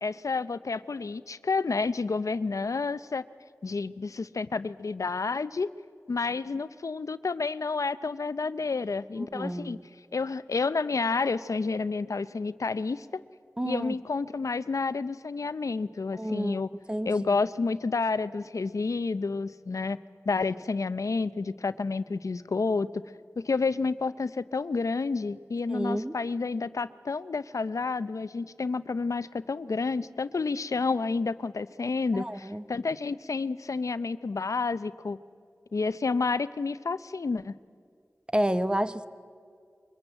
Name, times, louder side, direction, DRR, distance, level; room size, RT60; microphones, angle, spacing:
voice 1, 0.0-3.3 3.6-5.7 6.1-9.8 10.1-13.2 13.6-16.7 17.1-20.0 20.3-22.9 23.4-35.2 35.7-37.5, left 4 dB, 85° left, 15 dB, 0.6 m, -30 dB
voice 2, 9.2-9.9 13.6-14.0 16.1-17.4 25.7-26.1 32.1-32.6 38.3-39.1, right 1 dB, 15° right, 12 dB, 0.9 m, -30 dB
24.0 x 21.0 x 8.8 m, 2.2 s
wide cardioid pair, 60°, 5 cm